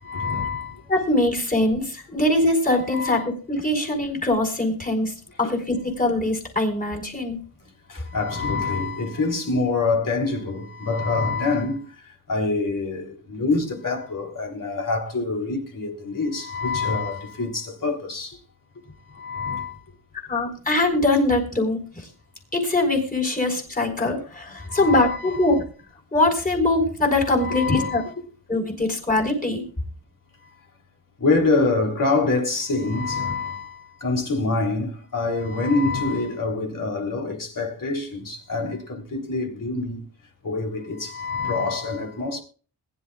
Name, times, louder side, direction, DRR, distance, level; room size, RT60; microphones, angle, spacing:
voice 1, 0.0-0.8 2.8-3.3 5.4-5.5 7.9-11.9 12.3-18.4 19.1-19.8 24.5-25.5 27.3-28.1 31.2-40.0 40.4-42.4, left 3 dB, 45° left, 3.5 m, -26 dB
voice 2, 0.9-7.4 20.3-22.1 22.5-25.6 26.1-28.0 28.5-29.6, left 2 dB, 20° left, 4.5 m, -22 dB
21.5 x 11.0 x 2.4 m
wide cardioid pair, 110°, 44 cm